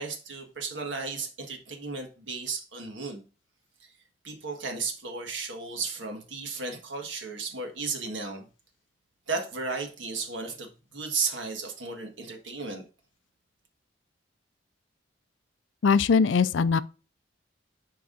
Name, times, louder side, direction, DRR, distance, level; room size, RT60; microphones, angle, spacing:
voice 1, 0.0-3.2 3.8-3.9 4.2-8.5 9.3-12.8, right 4 dB, 85° right, 1.5 m, -34 dB
voice 2, 15.8-16.8, left 5 dB, 80° left, 0.4 m, -21 dB
11.0 x 4.7 x 2.5 m
head